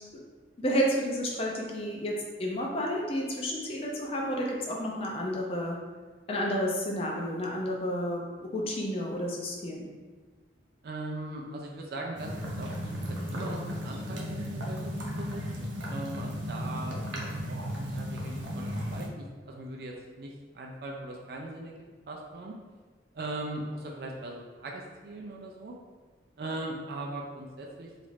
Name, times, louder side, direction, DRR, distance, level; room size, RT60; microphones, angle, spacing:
voice 1, 0.6-5.8 6.3-9.9, equal, 30° left, -1 dB, 0.4 m, -31 dB
voice 2, 10.8-21.8 22.1-22.5 23.1-25.7 26.4-27.9, right 2 dB, 55° right, 0 dB, 0.3 m, -40 dB
sound 1, 12.2-19.1, equal, 90° right, 0.6 m, -35 dB
3.1 x 2.4 x 3.1 m, 1.4 s
head